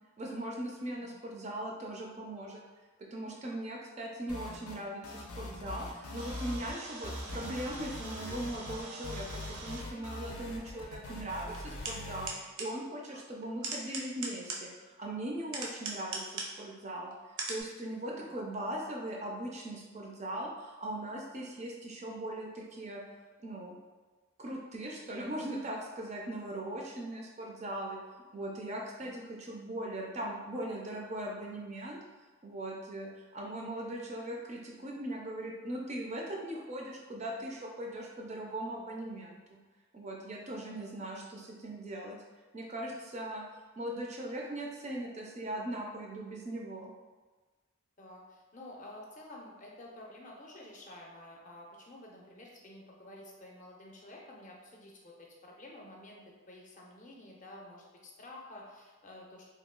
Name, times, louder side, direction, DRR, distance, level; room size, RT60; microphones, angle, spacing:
voice 1, 0.2-2.6 3.0-23.0 23.4-23.8 24.4-28.0 28.3-32.0 32.4-39.6 39.9-42.2 42.5-43.4 43.8-46.9, right 1 dB, 30° right, -1 dB, 0.3 m, -39 dB
sound 1, 4.3-4.8 5.0-6.8 7.0-12.3, left 2 dB, 90° left, 0.6 m, -42 dB
sound 2, 6.2-9.9 10.8-10.9 11.5-12.0 12.2-12.7 13.4-14.8 15.4-16.6 17.1-17.2 17.4-17.6, right 3 dB, 80° right, 0.6 m, -41 dB
voice 2, 40.5-40.9 48.0-59.4, left 1 dB, 35° left, -2 dB, 0.5 m, -51 dB
2.8 x 2.3 x 3.6 m, 1.3 s
head